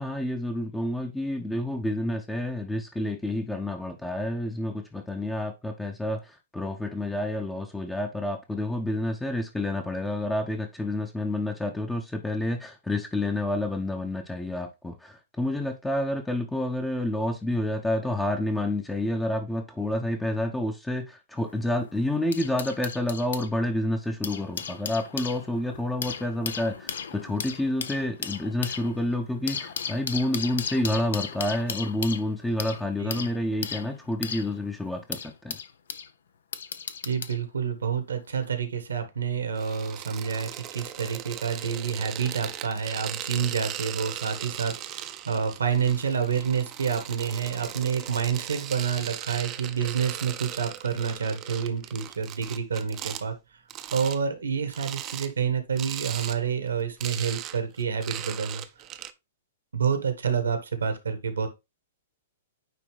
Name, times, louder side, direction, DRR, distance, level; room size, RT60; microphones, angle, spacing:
voice 1, 0.0-35.6, left 1 dB, 5° left, 0.8 m, -29 dB
sound 1, 21.4-23.5 24.0-36.1 36.5-37.4 38.3-38.5, left 7 dB, 65° left, 0.6 m, -36 dB
voice 2, 37.0-53.4 53.9-58.6 59.7-61.5, right 7 dB, 75° right, 1.4 m, -28 dB
sound 2, 39.5-53.2 53.7-54.2 54.7-55.3 55.8-56.4 56.7-59.1, right 12 dB, 30° right, 0.7 m, -38 dB
9.3 x 3.1 x 3.2 m
figure-of-eight pair, 110°, 0 cm